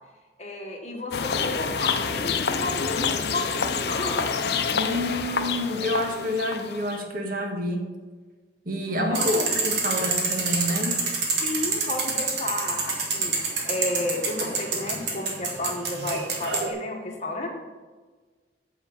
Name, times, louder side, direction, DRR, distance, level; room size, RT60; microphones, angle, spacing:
voice 1, 0.4-4.4 8.9-9.3 11.4-13.3 13.6-17.5, left 2 dB, 40° left, 0 dB, 1.6 m, -32 dB
sound 1, 1.1-7.0, left 5 dB, 65° left, 0.6 m, -27 dB
voice 2, 4.7-7.9 8.6-11.0, left 1 dB, 50° right, 2 dB, 1.6 m, -28 dB
sound 2, 9.1-16.7, right 4 dB, 75° right, 1.7 m, -27 dB
8.8 x 4.7 x 7.2 m, 1.3 s
head